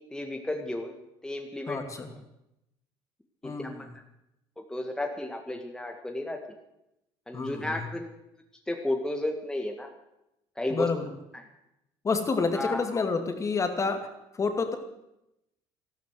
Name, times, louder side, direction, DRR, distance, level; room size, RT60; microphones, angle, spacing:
voice 1, 0.1-0.9 1.2-1.8 3.4-3.9 4.6-6.4 7.3-8.1 8.7-9.9 10.6-10.9 11.3-11.4 12.5-12.8, left 1 dB, 5° left, 3 dB, 1.8 m, -33 dB
voice 2, 1.7-2.1 3.4-3.9 7.3-7.9 10.7-11.0 12.0-14.1 14.3-14.8, left 4 dB, 30° left, 7 dB, 2.3 m, -29 dB
13.5 x 12.5 x 8.0 m, 0.86 s
supercardioid pair, 85°, 10 cm